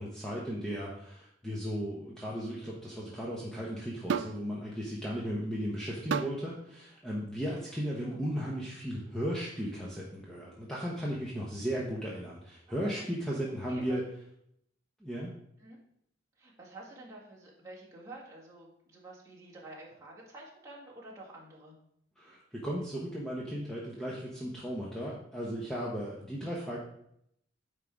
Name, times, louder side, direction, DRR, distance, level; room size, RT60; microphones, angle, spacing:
voice 1, 0.0-14.0 15.0-15.3 22.2-26.8, equal, 5° left, -6 dB, 0.9 m, -36 dB
sound 1, 4.1-4.4 6.1-6.4 7.5-7.6, right 6 dB, 70° right, 0.4 m, -32 dB
voice 2, 12.7-13.1 13.7-14.0 15.6-15.8 16.4-21.7, right 2 dB, 15° right, -6 dB, 1.9 m, -49 dB
9.1 x 3.7 x 4.7 m, 0.73 s
head